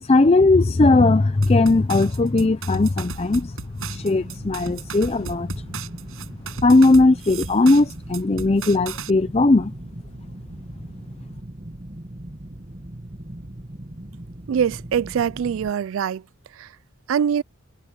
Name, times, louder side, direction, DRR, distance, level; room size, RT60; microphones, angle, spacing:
voice 1, 0.0-3.6 3.9-5.5 6.6-9.7, left 2 dB, 30° left, 0.5 m, -18 dB
sound 1, 1.4-9.1, right 4 dB, 85° right, 6.9 m, -35 dB
sound 2, 3.8-15.7, right 1 dB, 35° right, 1.6 m, -39 dB
voice 2, 14.5-16.2 16.6-16.7 17.1-17.4, right 8 dB, 70° right, 0.3 m, -23 dB
head